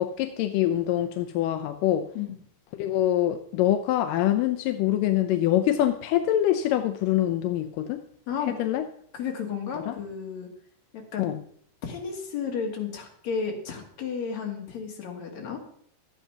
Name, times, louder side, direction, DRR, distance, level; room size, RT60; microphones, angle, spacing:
voice 1, 0.0-2.0 2.8-8.0 8.6-8.8 9.9-10.0 11.2-11.4, left 12 dB, 85° left, 8 dB, 2.3 m, -24 dB
voice 2, 8.3-8.6 9.1-10.5 10.9-11.3 11.8-15.6, left 6 dB, 60° left, 1 dB, 3.1 m, -33 dB
12.5 x 8.2 x 5.7 m, 0.63 s
omnidirectional pair, 3.8 m